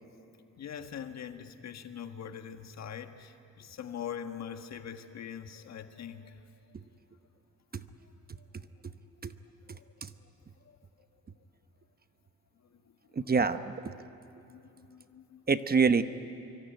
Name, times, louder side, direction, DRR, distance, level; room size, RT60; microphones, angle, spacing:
voice 1, 0.6-6.5 8.0-8.1 8.4-8.5 9.7-9.9 10.6-10.8 12.7-12.8 14.5-15.4, left 8 dB, 60° left, 7 dB, 1.6 m, -43 dB
voice 2, 13.2-13.9 15.5-16.0, right 5 dB, 30° right, 10 dB, 1.0 m, -26 dB
26.0 x 24.0 x 9.2 m, 2.7 s
cardioid pair, 90°, 30 cm